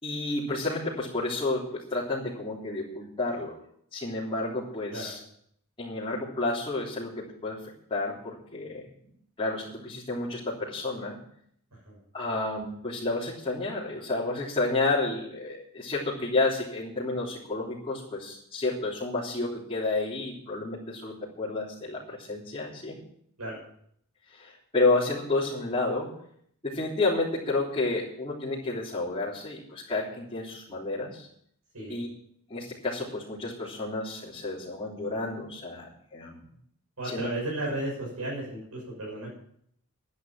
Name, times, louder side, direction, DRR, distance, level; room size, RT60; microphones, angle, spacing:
voice 1, 0.0-3.6 3.9-5.2 5.8-7.6 7.9-8.9 9.4-11.2 12.1-23.0 24.3-26.1 26.6-31.3 31.9-32.1 32.5-36.4 37.0-37.3, left 2 dB, 25° left, -9 dB, 3.6 m, -30 dB
voice 2, 37.0-39.3, right 1 dB, 85° right, -4 dB, 6.6 m, -34 dB
11.0 x 10.5 x 7.7 m, 0.67 s
head